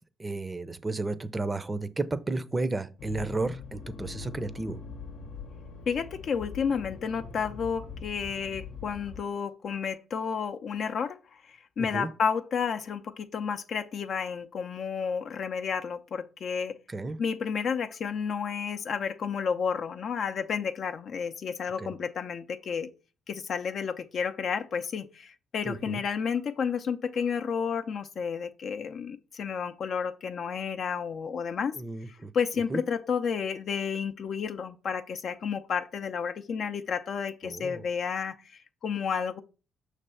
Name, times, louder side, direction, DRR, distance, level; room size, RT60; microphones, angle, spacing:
voice 1, 0.2-4.8 11.8-12.1 16.9-17.2 21.8-21.9 25.6-26.0 31.7-32.3 32.7-32.8 37.4-37.8, right 2 dB, 20° right, 0.5 m, -33 dB
Accelerating revving vroom, 3.0-9.2, left 5 dB, 80° left, 0.8 m, -43 dB
voice 2, 5.9-16.8 17.2-22.9 23.3-31.8 32.1-39.4, left 6 dB, 60° left, 0.4 m, -31 dB
6.1 x 3.3 x 5.4 m
cardioid pair, 90°, 0 cm